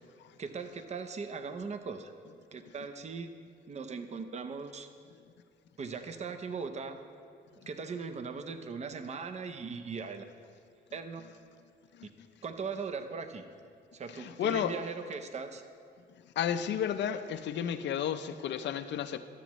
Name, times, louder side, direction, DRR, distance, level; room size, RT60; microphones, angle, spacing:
voice 1, 0.4-2.1 2.5-3.3 3.7-4.9 5.8-7.0 7.7-10.2 10.9-11.2 12.4-13.5 13.9-15.6, right 5 dB, 35° right, 8 dB, 0.6 m, -39 dB
voice 2, 14.2-14.7 16.4-19.2, left 9 dB, 65° left, 10 dB, 0.5 m, -32 dB
12.5 x 7.2 x 3.0 m, 2.3 s
cardioid pair, 90°, 20 cm